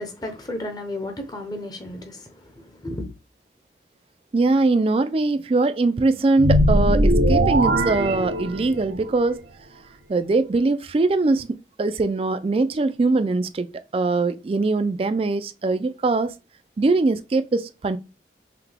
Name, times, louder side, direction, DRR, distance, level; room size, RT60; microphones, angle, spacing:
voice 1, 0.0-3.0, left 1 dB, 20° left, 0.7 m, -33 dB
voice 2, 4.3-9.4 10.1-11.5 11.8-16.3 16.8-18.0, right 3 dB, 30° right, 0.3 m, -22 dB
sound 1, 6.4-9.0, right 1 dB, 85° right, 0.8 m, -19 dB
5.7 x 2.2 x 3.4 m
head